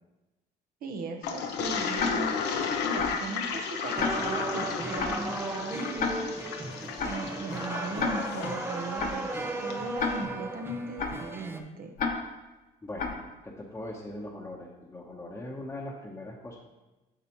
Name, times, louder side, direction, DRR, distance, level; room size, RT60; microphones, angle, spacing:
voice 1, 0.8-2.4 2.8-6.3 7.0-9.3 9.6-11.9, right 3 dB, 60° right, 4 dB, 1.1 m, -38 dB
Toilet flush, 1.2-9.8, left 6 dB, 85° left, 0.9 m, -34 dB
Tick-tock, 2.0-2.1 3.0-3.1 4.0-4.1 5.0-5.1 6.0-6.1 7.0-7.1 8.0-8.1 9.0-9.1 10.0-10.1 11.0-11.1 12.0-12.1 13.0-13.1, left 5 dB, 55° left, 1.2 m, -28 dB
sound 1, 4.0-11.6, right 2 dB, 15° right, 0.6 m, -35 dB
voice 2, 12.8-16.6, left 1 dB, 15° left, -3 dB, 1.0 m, -40 dB
8.5 x 6.6 x 3.1 m, 1.1 s
cardioid pair, 110°, 17 cm